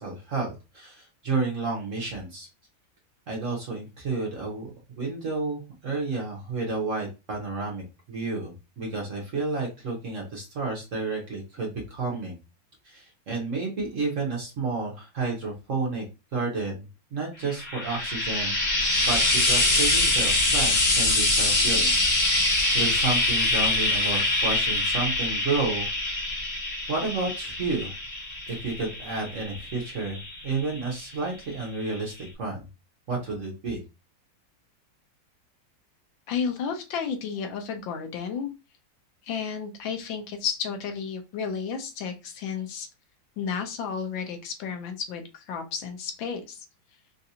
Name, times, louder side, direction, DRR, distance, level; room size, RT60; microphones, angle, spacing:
voice 1, 0.0-2.5 3.3-4.7 5.0-12.4 12.8-16.0 16.3-16.9 17.1-21.9 22.3-26.2 26.9-27.9 28.5-32.7 33.1-33.8, right 3 dB, 55° right, -1 dB, 1.0 m, -31 dB
Frying (food), 17.5-30.9 31.9-32.0, left 2 dB, 50° left, 1.6 m, -24 dB
voice 2, 36.3-38.5 39.2-42.9 43.4-46.7, left 6 dB, 80° left, 6 dB, 1.5 m, -32 dB
3.9 x 2.5 x 2.7 m, 0.27 s
omnidirectional pair, 2.1 m